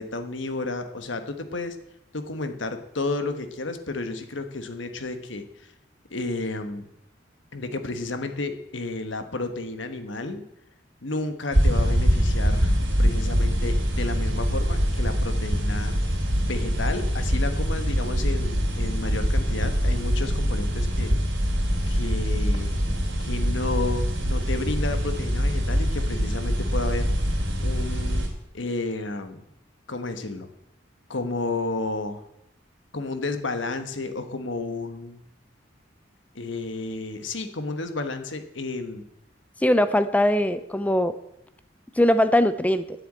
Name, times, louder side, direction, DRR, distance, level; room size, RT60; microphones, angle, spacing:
voice 1, 0.0-1.8 2.1-5.4 6.1-6.8 7.5-10.5 11.0-16.0 16.4-21.1 21.9-22.8 23.2-27.1 27.6-28.3 28.5-29.5 29.9-30.5 31.1-32.2 32.9-35.2 36.3-39.1, left 2 dB, 75° left, 8 dB, 1.3 m, -32 dB
sound 1, 11.5-28.3, equal, 85° right, 3.2 m, -24 dB
voice 2, 39.6-41.2 42.0-42.9, left 1 dB, 10° left, 12 dB, 0.5 m, -20 dB
9.4 x 7.9 x 8.6 m, 0.83 s
head